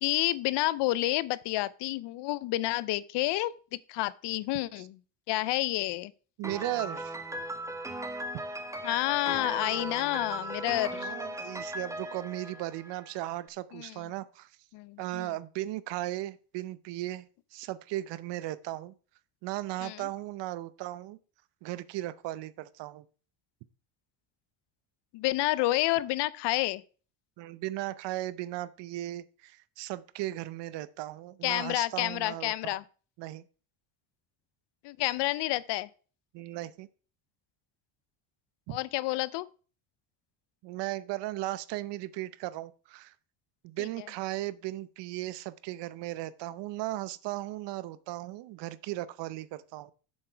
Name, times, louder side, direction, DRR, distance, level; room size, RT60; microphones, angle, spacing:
voice 1, 0.0-4.9 5.3-6.1 8.8-11.1 13.7-14.0 14.7-15.3 19.8-20.1 25.1-26.8 31.4-32.8 34.8-35.9 38.7-39.5 43.8-43.9, left 17 dB, 70° left, 0.7 m, -29 dB
Piano, 6.4-13.3, right 1 dB, 5° right, 1.1 m, -38 dB
voice 2, 6.4-7.1 10.9-14.5 15.0-17.3 17.5-18.9 19.4-21.2 21.6-23.0 27.4-32.8 33.2-33.4 36.3-36.9 38.7-38.8 40.6-43.1 43.6-49.9, right 16 dB, 70° right, 0.8 m, -36 dB
7.5 x 6.7 x 4.5 m
cardioid pair, 100°, 44 cm